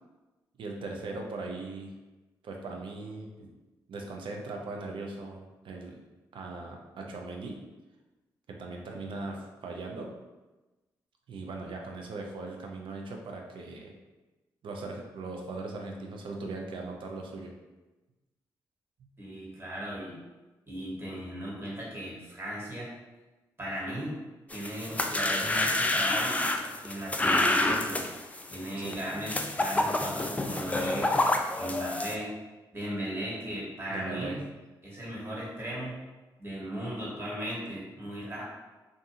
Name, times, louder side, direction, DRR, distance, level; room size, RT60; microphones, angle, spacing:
voice 1, 0.6-1.9 2.4-3.5 3.9-6.0 6.3-7.7 8.5-10.1 11.3-13.9 14.6-17.5 28.8-29.0 33.9-34.4, right 3 dB, 70° right, 1 dB, 0.5 m, -39 dB
voice 2, 19.2-20.2 20.7-22.9 23.6-24.2 24.5-26.4 26.8-28.0 28.5-31.1 31.6-32.3 32.7-34.4 34.8-35.9 36.4-38.4, equal, 25° right, -6 dB, 1.2 m, -37 dB
sound 1, 24.5-32.2, left 2 dB, 15° left, 0.3 m, -28 dB
2.6 x 2.3 x 2.7 m, 1.1 s
supercardioid pair, 45°, 9 cm